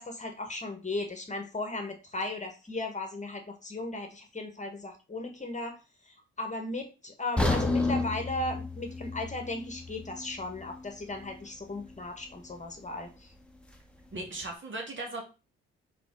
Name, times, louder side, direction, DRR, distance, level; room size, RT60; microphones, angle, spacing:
voice 1, 0.0-5.8 6.1-13.3, left 2 dB, 25° left, 4 dB, 1.9 m, -36 dB
sound 1, 7.4-11.4 11.8-11.9 12.5-12.6, left 2 dB, 5° left, 1.5 m, -31 dB
voice 2, 14.1-15.2, right 2 dB, 40° right, 1 dB, 2.6 m, -37 dB
5.1 x 4.9 x 4.8 m, 0.32 s
hypercardioid pair, 55°, 29 cm